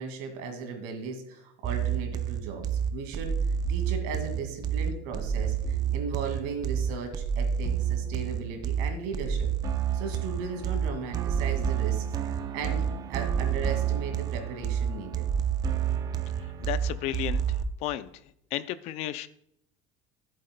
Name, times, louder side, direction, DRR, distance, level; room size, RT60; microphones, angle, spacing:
voice 1, 0.0-3.4 3.7-9.5 9.9-12.1 12.5-15.3, right 5 dB, 70° right, 5 dB, 2.1 m, -37 dB
sound 1, 1.6-17.6, right 8 dB, 25° right, 0.5 m, -29 dB
voice 2, 16.6-18.1 18.5-19.3, left 13 dB, 50° left, 15 dB, 0.4 m, -33 dB
14.0 x 7.6 x 2.2 m, 0.75 s
cardioid pair, 170°, 15 cm